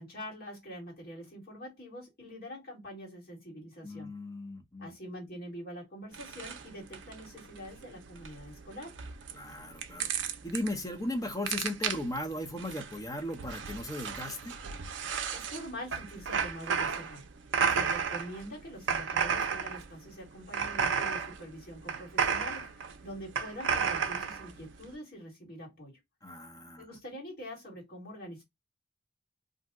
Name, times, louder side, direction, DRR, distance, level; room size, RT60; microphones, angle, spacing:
voice 1, 0.0-4.1 4.8-9.0 15.3-17.2 17.7-26.0 26.8-28.4, equal, 50° left, 1.7 m, -45 dB
voice 2, 3.8-4.9 9.3-10.1 10.4-14.5 26.2-26.8, left 1 dB, 15° left, 0.6 m, -37 dB
sound 1, 6.1-24.9, right 6 dB, 65° right, 0.4 m, -33 dB
2.7 x 2.1 x 3.5 m
head